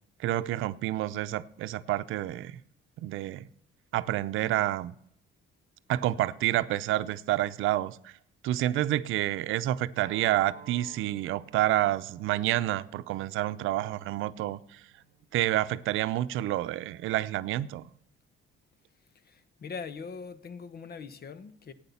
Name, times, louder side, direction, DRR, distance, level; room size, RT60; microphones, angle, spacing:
voice 1, 0.2-2.6 3.0-3.5 3.9-4.9 5.9-8.1 8.4-14.8 15.3-17.9, right 14 dB, 90° right, 0.6 m, -29 dB
Acoustic guitar, 10.0-15.2, right 6 dB, 40° right, 1.4 m, -53 dB
voice 2, 19.1-21.7, left 5 dB, 50° left, 1.2 m, -42 dB
12.0 x 9.0 x 7.1 m
cardioid pair, 90°, 20 cm